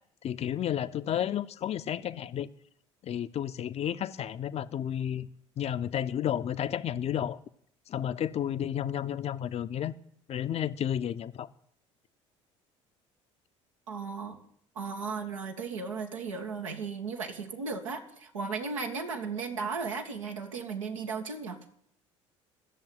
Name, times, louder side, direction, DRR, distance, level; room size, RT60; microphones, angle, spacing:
voice 1, 0.2-2.5 3.0-5.3 5.6-7.4 7.9-9.9 10.3-11.5, left 10 dB, 40° left, 0.7 m, -32 dB
voice 2, 13.9-14.4 14.7-21.6, right 5 dB, 80° right, 1.5 m, -35 dB
15.0 x 7.1 x 9.4 m
figure-of-eight pair, 60°, 16 cm